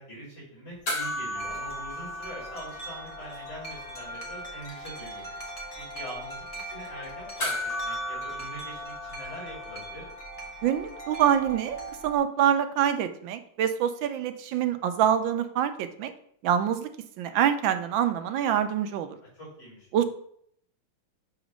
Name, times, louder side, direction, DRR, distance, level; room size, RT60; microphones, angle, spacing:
voice 1, 0.0-5.3 5.8-10.0 19.4-20.0, equal, 55° left, -9 dB, 3.4 m, -43 dB
sound 1, 0.9-3.5 3.8-3.9 7.4-10.0 12.1-12.2, left 1 dB, 70° left, 3.4 m, -35 dB
Wind chime, 1.3-12.2, right 1 dB, 20° left, 1.2 m, -40 dB
voice 2, 10.6-16.1 16.4-16.9 17.2-19.1 19.9-20.0, right 9 dB, 85° right, 9 dB, 1.4 m, -25 dB
7.3 x 3.0 x 6.0 m, 0.66 s
omnidirectional pair, 2.1 m